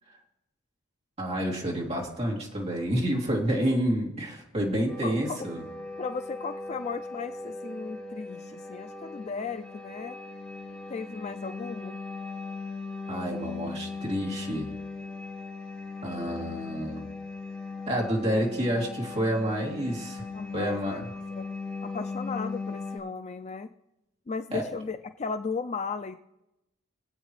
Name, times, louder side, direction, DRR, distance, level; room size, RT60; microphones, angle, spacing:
voice 1, 1.2-5.6 13.1-14.7 16.0-17.1 17.9-20.2 20.5-21.0 24.5-24.6, equal, 30° right, -2 dB, 2.7 m, -29 dB
sound 1, 4.9-23.0, left 3 dB, 5° left, 3.1 m, -38 dB
voice 2, 5.0-5.4 6.0-10.2 10.9-12.0 20.3-21.0 21.3-21.5 21.8-23.7 24.3-26.2, left 5 dB, 30° left, 10 dB, 0.3 m, -36 dB
24.5 x 8.2 x 3.2 m, 0.90 s
head